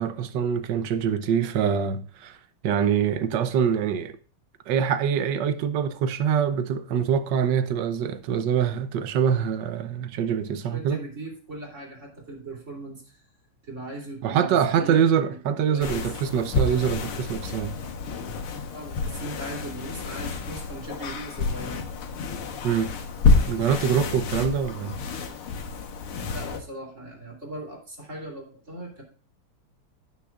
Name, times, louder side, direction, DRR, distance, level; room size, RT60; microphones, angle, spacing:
voice 1, 0.0-2.4 2.6-4.2 4.7-11.0 14.2-17.7 22.6-22.9 23.5-25.0, right 8 dB, 65° right, 1.2 m, -24 dB
voice 2, 10.7-13.2 13.6-16.1 18.7-21.9 26.3-29.0, right 2 dB, 35° right, 3.5 m, -39 dB
sound 1, 15.8-26.6, left 4 dB, 80° left, 2.1 m, -28 dB
16.5 x 6.2 x 2.4 m
omnidirectional pair, 2.4 m